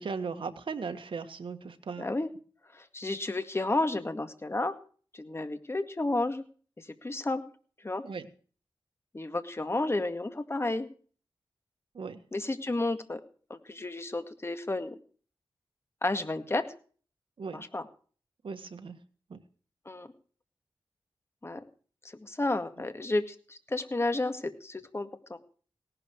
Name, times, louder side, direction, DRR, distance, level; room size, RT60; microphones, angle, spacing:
voice 1, 0.0-2.1 8.0-8.3 11.9-12.2 17.4-17.6 18.4-19.0 19.3-19.4, right 5 dB, 75° right, 8 dB, 1.6 m, -37 dB
voice 2, 2.0-2.3 2.7-4.7 5.1-6.4 6.8-7.4 7.8-8.0 9.1-10.9 12.3-13.2 13.5-15.0 16.0-16.6 17.5-17.9 19.9-20.1 21.4-21.6 22.0-25.4, left 2 dB, 30° left, 9 dB, 2.0 m, -31 dB
18.0 x 12.0 x 4.6 m, 0.42 s
wide cardioid pair, 75°, 9 cm